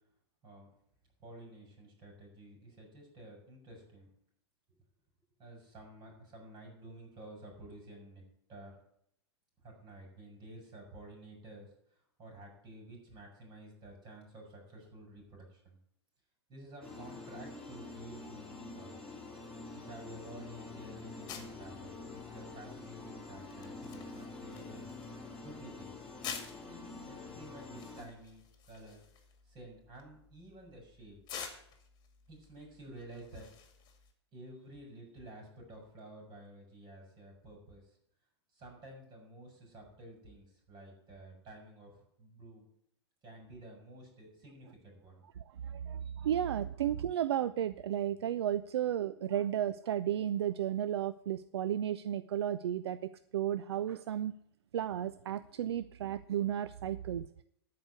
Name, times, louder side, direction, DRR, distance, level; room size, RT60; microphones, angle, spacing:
voice 1, 1.2-4.1 4.7-4.8 5.4-8.2 8.5-8.7 9.6-15.8 16.5-19.0 19.7-24.9 25.4-26.1 26.7-29.1 29.4-31.2 32.3-33.5 34.3-38.0 38.5-42.7 43.2-45.2, right 1 dB, 30° right, 1 dB, 5.4 m, -52 dB
sound 1, 16.8-28.0, left 3 dB, 5° left, 3.4 m, -47 dB
sound 2, 21.3-34.1, left 7 dB, 30° left, 2.1 m, -50 dB
voice 2, 45.4-54.3 54.7-57.3, right 10 dB, 70° right, 14 dB, 0.4 m, -33 dB
13.5 x 4.9 x 8.0 m, 0.72 s
hypercardioid pair, 110°, 14 cm